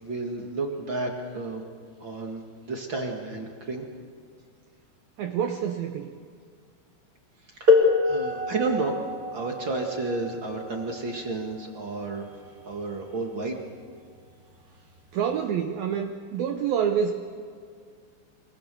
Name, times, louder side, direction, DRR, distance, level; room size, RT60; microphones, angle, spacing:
voice 1, 0.0-1.6 2.0-3.9 7.6-8.9 9.3-12.3 12.6-13.6, right 3 dB, 45° right, 2 dB, 1.6 m, -31 dB
voice 2, 5.2-6.1 15.1-17.2, right 8 dB, 80° right, 6 dB, 2.1 m, -27 dB
sound 1, 7.7-13.1 14.2-14.3 15.1-15.3, left 4 dB, 25° right, 2.2 m, -26 dB
27.5 x 25.5 x 7.0 m, 2.1 s
omnidirectional pair, 5.5 m